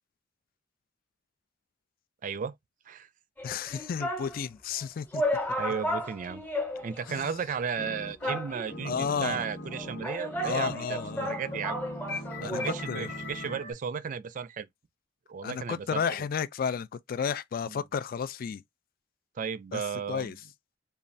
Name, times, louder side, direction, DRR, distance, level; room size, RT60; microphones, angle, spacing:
voice 1, 2.2-2.5 2.9-3.1 5.6-6.4 6.8-11.8 12.4-14.7 15.3-16.3 17.7-17.8 19.4-20.4, right 6 dB, 45° right, 0.3 m, -35 dB
voice 2, 3.4-5.2 7.1-7.3 8.8-9.4 10.4-11.3 12.4-13.1 15.4-18.6 19.7-20.4, left 6 dB, 50° left, 0.3 m, -32 dB
sound 1, 3.4-4.3 4.8-4.9 5.1-7.2 7.5-7.6 8.2-8.9 9.7-12.9 13.1-13.2, left 1 dB, 10° left, 0.8 m, -33 dB
sound 2, 7.8-8.4 8.7-13.7, left 1 dB, 85° left, 1.3 m, -40 dB
3.1 x 2.3 x 2.6 m
head